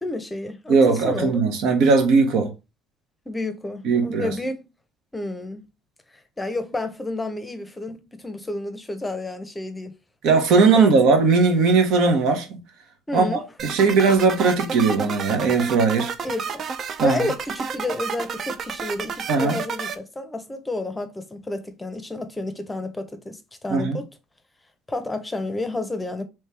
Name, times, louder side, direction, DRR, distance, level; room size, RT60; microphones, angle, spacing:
voice 1, 0.0-1.4 3.3-4.7 5.1-5.7 6.4-9.9 10.8-11.0 13.1-13.4 16.2-16.7 17.0-24.1 24.9-26.3, left 2 dB, 15° left, 0.7 m, -30 dB
voice 2, 0.7-2.5 3.8-4.3 10.2-12.5 13.1-16.1 17.0-17.2 19.3-19.6 23.7-24.0, right 4 dB, 75° right, 1.1 m, -18 dB
sound 1, 13.6-20.0, right 6 dB, 45° right, 0.4 m, -31 dB
3.3 x 3.1 x 3.3 m
supercardioid pair, 90°, 0 cm